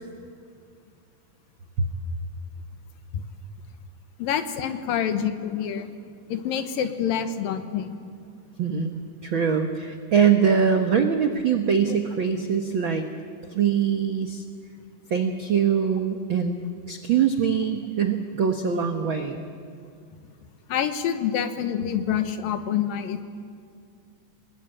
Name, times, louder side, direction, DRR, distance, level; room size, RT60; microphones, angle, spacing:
voice 1, 4.2-5.9 6.3-8.0 20.7-23.2, left 8 dB, 80° left, 9 dB, 2.9 m, -27 dB
voice 2, 8.6-13.1 13.5-14.4 15.1-19.4, right 7 dB, 70° right, 6 dB, 1.1 m, -23 dB
27.0 x 20.0 x 9.0 m, 2.2 s
omnidirectional pair, 4.1 m